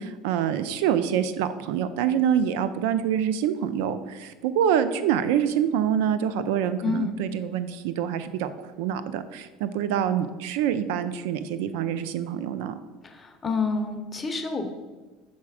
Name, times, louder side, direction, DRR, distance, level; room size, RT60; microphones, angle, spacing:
voice 1, 0.0-8.5 8.8-12.8, right 9 dB, 80° right, 12 dB, 0.4 m, -26 dB
voice 2, 6.8-7.1 13.0-14.7, left 4 dB, 20° left, 6 dB, 0.7 m, -28 dB
6.0 x 4.1 x 4.8 m, 1.2 s
supercardioid pair, 115°, 0 cm